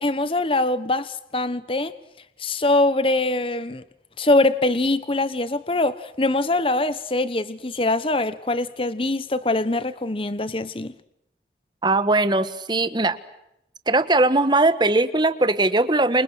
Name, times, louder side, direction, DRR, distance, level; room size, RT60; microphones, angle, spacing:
voice 1, 0.0-1.9 2.4-3.8 4.2-10.9, left 2 dB, 30° left, 14 dB, 1.2 m, -23 dB
voice 2, 11.8-13.2 13.9-16.2, right 2 dB, 25° right, 12 dB, 1.5 m, -20 dB
28.5 x 27.0 x 6.4 m, 0.79 s
head